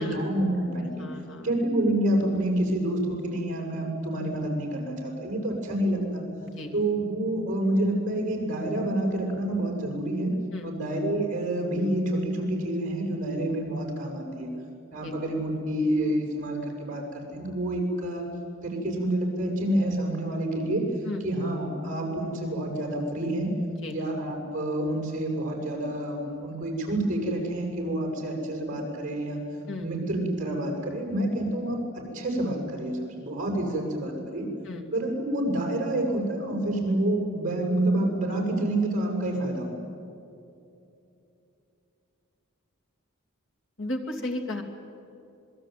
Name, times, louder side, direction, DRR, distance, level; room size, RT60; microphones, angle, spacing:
voice 1, 0.0-1.0 1.4-6.2 6.7-10.3 10.6-14.5 14.9-18.2 18.6-20.9 21.2-23.5 23.9-29.4 29.8-34.5 34.9-39.8, right 1 dB, 40° right, 1 dB, 7.5 m, -28 dB
voice 2, 0.8-1.5 6.6-6.8 10.5-10.7 15.0-15.1 21.0-21.2 23.8-24.0 29.7-29.9 34.6-34.9 43.8-44.6, left 1 dB, 65° left, 2 dB, 2.9 m, -34 dB
26.5 x 22.0 x 9.4 m, 2.7 s
head